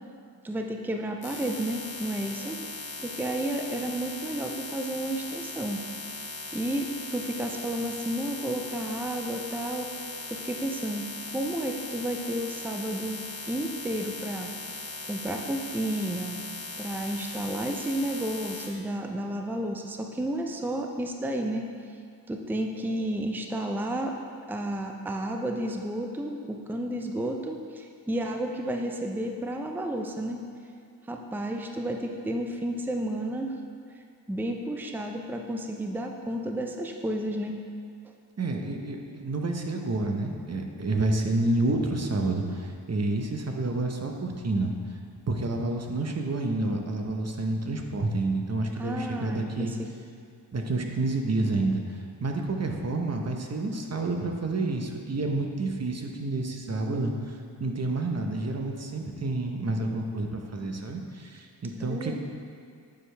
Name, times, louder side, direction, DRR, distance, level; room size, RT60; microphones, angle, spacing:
voice 1, 0.4-2.7 3.0-5.8 6.5-9.9 10.3-13.2 13.5-14.8 15.1-16.4 16.8-21.7 22.3-24.2 24.5-30.4 31.1-33.5 34.3-37.6 48.7-49.9 61.8-62.2, right 1 dB, 5° right, 3 dB, 0.6 m, -32 dB
sound 1, 1.2-18.7, left 3 dB, 55° left, 1.4 m, -39 dB
voice 2, 38.4-44.7 45.3-49.7 50.5-51.8 52.2-62.2, right 2 dB, 35° right, 2 dB, 0.9 m, -29 dB
9.6 x 4.6 x 3.3 m, 2.4 s
supercardioid pair, 50°, 45 cm